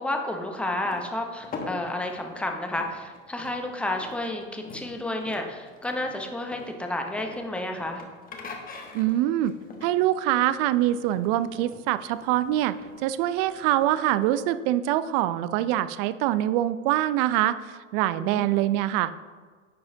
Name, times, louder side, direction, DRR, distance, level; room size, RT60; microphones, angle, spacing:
voice 1, 0.0-8.0 18.1-18.5, left 1 dB, 5° left, 3 dB, 0.7 m, -31 dB
sound 1, 0.8-13.9, left 3 dB, 25° left, 1.0 m, -44 dB
voice 2, 8.9-9.5 9.8-12.7 13.0-19.1, right 13 dB, 45° right, 14 dB, 0.4 m, -24 dB
9.8 x 4.7 x 2.7 m, 1.5 s
hypercardioid pair, 95°, 38 cm